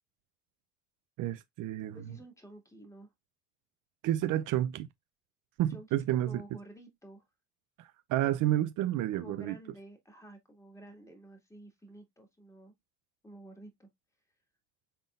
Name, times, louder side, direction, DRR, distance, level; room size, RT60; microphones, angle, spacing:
voice 1, 1.2-2.1 4.0-4.9 5.6-6.4 7.8-9.6, right 13 dB, 60° right, 0.6 m, -30 dB
voice 2, 1.9-3.1 5.7-7.2 9.1-12.7 13.2-13.9, right 1 dB, 10° left, 2.2 m, -51 dB
5.6 x 3.7 x 2.5 m
supercardioid pair, 80°, 35 cm